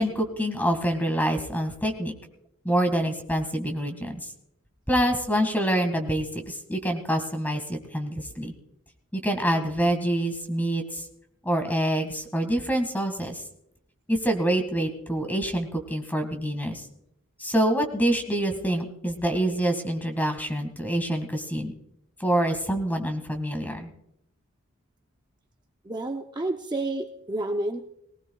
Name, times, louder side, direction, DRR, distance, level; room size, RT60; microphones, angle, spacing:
voice 1, 0.0-2.1 2.6-4.2 4.9-8.5 9.1-11.0 11.4-13.4 14.1-16.8 17.4-21.7 22.2-23.9, right 1 dB, 10° left, 6 dB, 1.9 m, -26 dB
voice 2, 25.8-27.8, right 2 dB, 20° right, 3 dB, 0.6 m, -30 dB
19.5 x 18.5 x 2.3 m, 0.78 s
head